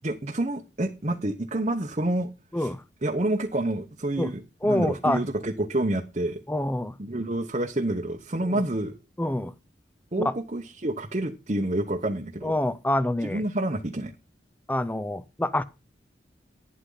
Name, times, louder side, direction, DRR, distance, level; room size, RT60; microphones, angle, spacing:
voice 1, 0.0-2.3 2.5-2.7 3.0-6.4 7.0-9.0 10.1-12.5 13.2-14.1, right 1 dB, 35° right, 1.0 m, -28 dB
voice 2, 4.6-5.2 6.5-6.9 8.5-8.6 9.2-9.5 10.2-10.3 12.4-13.4 14.7-15.6, left 1 dB, 10° left, 0.6 m, -26 dB
11.5 x 9.9 x 3.9 m
head